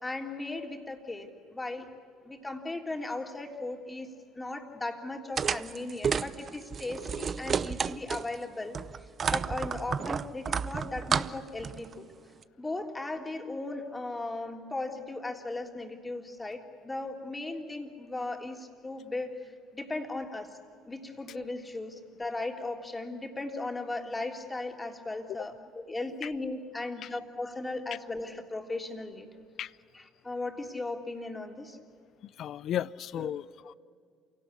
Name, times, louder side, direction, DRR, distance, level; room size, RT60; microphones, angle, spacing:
voice 1, 0.0-1.9 2.2-8.8 9.3-11.9 12.6-19.3 19.7-20.6 20.9-29.3 29.9-31.8 33.2-33.3, left 2 dB, 20° left, 3.4 m, -37 dB
sound 1, 5.4-8.4 8.7-11.9, right 6 dB, 40° right, 0.6 m, -31 dB
voice 2, 32.4-33.7, left 11 dB, 55° left, 0.5 m, -34 dB
28.5 x 18.0 x 8.5 m
hypercardioid pair, 60°, 0 cm